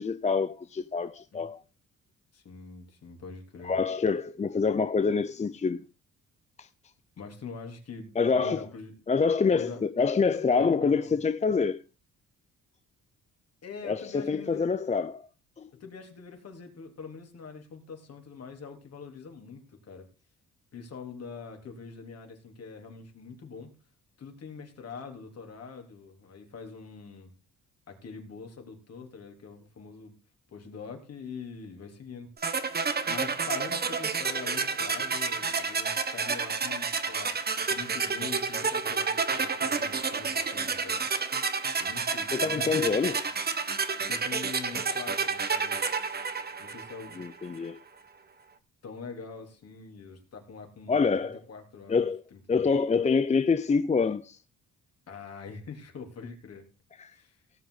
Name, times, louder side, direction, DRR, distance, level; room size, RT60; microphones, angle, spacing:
voice 1, 0.0-1.6 3.6-5.8 6.6-6.7 8.2-8.6 9.1-11.8 13.8-15.3 15.6-15.7 42.3-43.2 47.2-47.8 50.9-51.4 51.9-52.2 52.5-54.4 57.0-57.1, left 5 dB, 25° left, 0.6 m, -26 dB
voice 2, 2.3-3.8 7.2-8.9 9.5-9.8 10.5-10.7 11.0-11.1 13.6-14.7 15.8-20.1 20.7-23.7 24.2-27.3 27.9-30.1 30.5-32.3 33.1-37.3 37.7-41.0 41.8-42.9 43.5-43.8 44.1-45.7 46.6-47.2 48.8-52.7 55.1-56.7 57.1-57.4, left 5 dB, 55° left, 3.8 m, -44 dB
sound 1, 32.4-47.3, right 5 dB, 30° right, 1.3 m, -30 dB
17.5 x 7.6 x 4.1 m
cardioid pair, 90°, 30 cm